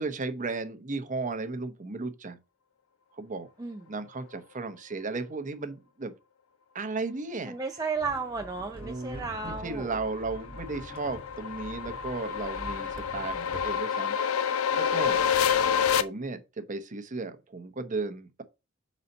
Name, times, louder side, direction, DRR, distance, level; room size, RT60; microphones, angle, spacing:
voice 1, 0.0-2.4 3.2-3.5 3.9-6.1 6.7-7.5 8.8-14.2 14.8-15.2 16.0-18.4, right 3 dB, 40° right, 0.9 m, -35 dB
voice 2, 7.5-9.9, right 4 dB, 15° right, 0.4 m, -33 dB
sound 1, 8.0-13.8, equal, 25° left, 0.9 m, -45 dB
sound 2, 9.4-16.0, left 8 dB, 90° left, 0.6 m, -28 dB
5.5 x 4.1 x 5.3 m
head